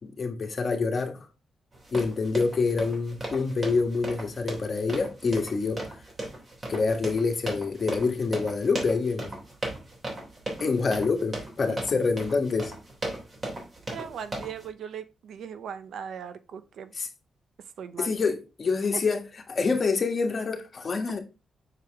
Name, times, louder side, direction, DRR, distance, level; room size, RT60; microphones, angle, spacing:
voice 1, 0.0-1.3 1.9-5.8 6.7-9.3 10.6-12.7 16.9-17.1 18.0-19.2 19.5-21.2, left 4 dB, 45° left, 1.6 m, -26 dB
sound 1, 1.7-14.7, right 2 dB, 35° right, 3.2 m, -37 dB
voice 2, 13.9-16.9 17.8-18.1 18.9-19.0 21.1-21.2, right 7 dB, 80° right, 0.7 m, -38 dB
6.8 x 4.7 x 3.5 m
cardioid pair, 90°, 0 cm